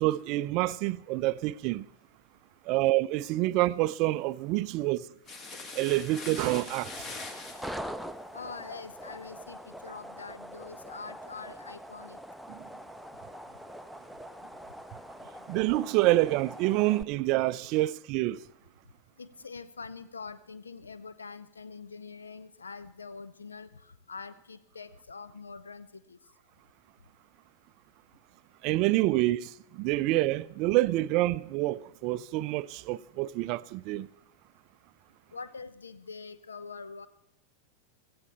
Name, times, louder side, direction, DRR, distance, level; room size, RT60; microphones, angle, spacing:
voice 1, 0.0-1.9 2.7-5.0 5.7-7.1 12.5-12.6 15.5-18.4 28.6-34.1, right 17 dB, 40° right, 0.4 m, -27 dB
sound 1, 5.3-7.8, left 3 dB, 30° left, 1.7 m, -42 dB
sound 2, 6.4-17.0, equal, ahead, 0.6 m, -44 dB
voice 2, 8.3-12.2 19.2-23.8 24.1-26.2 35.3-37.1, left 4 dB, 75° left, 0.7 m, -44 dB
16.5 x 14.5 x 3.4 m
figure-of-eight pair, 90°, 0 cm